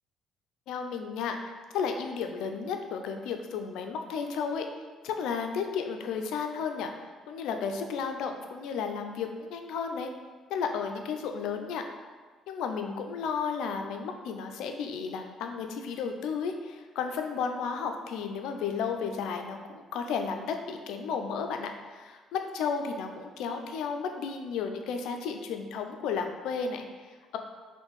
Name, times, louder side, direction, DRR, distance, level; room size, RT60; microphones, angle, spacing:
voice 1, 0.7-4.7 5.0-6.9 7.3-10.1 10.5-11.8 12.5-27.4, left 6 dB, 80° left, 5 dB, 0.3 m, -33 dB
3.3 x 2.6 x 3.0 m, 1.4 s
supercardioid pair, 75°, 0 cm